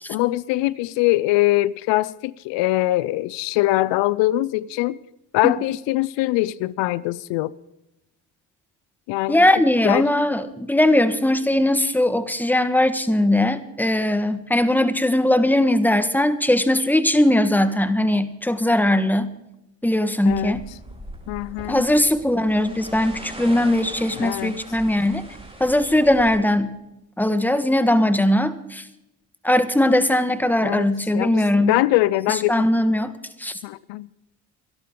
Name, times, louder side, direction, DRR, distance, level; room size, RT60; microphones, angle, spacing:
voice 1, 0.1-5.0 5.3-7.5 9.1-9.4 9.8-10.0 20.3-20.6 21.3-21.8 24.2-24.6 30.6-30.9 31.1-32.7 33.6-34.1, left 17 dB, 85° left, 0.6 m, -22 dB
voice 2, 9.3-19.3 19.8-20.7 21.7-25.2 25.6-26.7 27.2-28.8 29.4-31.8 32.3-33.6, left 1 dB, 5° left, 1.4 m, -20 dB
sound 1, 20.3-26.4, right 1 dB, 10° right, 4.0 m, -40 dB
26.0 x 11.5 x 3.8 m
supercardioid pair, 75°, 43 cm